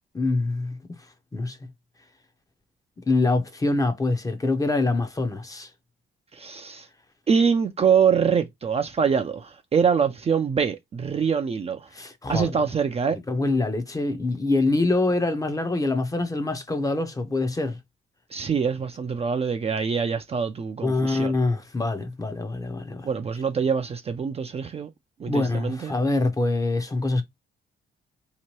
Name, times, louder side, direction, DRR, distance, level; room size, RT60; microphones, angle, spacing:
voice 1, 0.1-0.8 1.3-1.6 3.1-5.7 11.9-12.6 13.1-17.8 20.8-23.1 25.3-27.2, left 2 dB, 15° left, 0.6 m, -25 dB
voice 2, 6.3-6.9 7.3-11.9 12.3-13.2 18.3-21.4 23.0-24.9 25.2-25.9, right 6 dB, 30° right, 0.4 m, -24 dB
2.9 x 2.1 x 3.0 m
cardioid pair, 90°, 20 cm